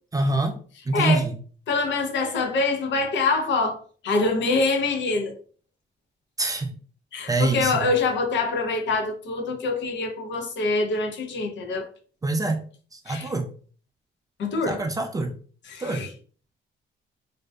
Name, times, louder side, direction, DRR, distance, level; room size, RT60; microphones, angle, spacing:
voice 1, 0.1-0.6 0.9-1.4 6.4-6.7 7.3-7.8 12.2-12.6 12.9-13.5 14.7-15.3 15.8-16.0, right 2 dB, 20° right, 0.4 m, -25 dB
voice 2, 0.9-1.3 1.7-5.3 7.1-11.9 13.1-13.3 14.4-14.8 15.7-16.1, left 3 dB, 65° left, 0.6 m, -25 dB
2.6 x 2.2 x 2.2 m
cardioid pair, 90°, 20 cm